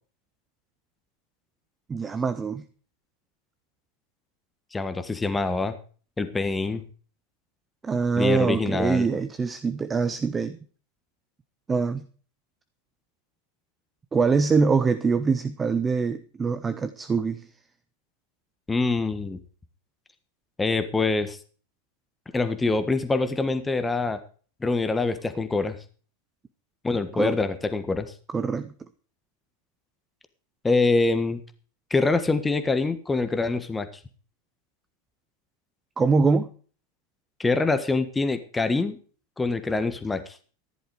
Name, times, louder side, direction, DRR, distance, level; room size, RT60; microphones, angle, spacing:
voice 1, 1.9-2.6 7.8-10.6 11.7-12.1 14.1-17.5 27.1-27.4 28.3-28.7 36.0-36.5, right 4 dB, 15° right, 12 dB, 1.0 m, -24 dB
voice 2, 4.7-5.7 6.2-6.8 8.2-9.1 18.7-19.4 20.6-21.4 22.3-24.2 24.6-25.8 26.8-28.1 30.6-31.4 31.9-33.9 37.4-39.0 39.4-40.4, left 3 dB, 10° left, 9 dB, 1.5 m, -25 dB
14.5 x 11.0 x 4.8 m, 0.41 s
figure-of-eight pair, 90°, 0 cm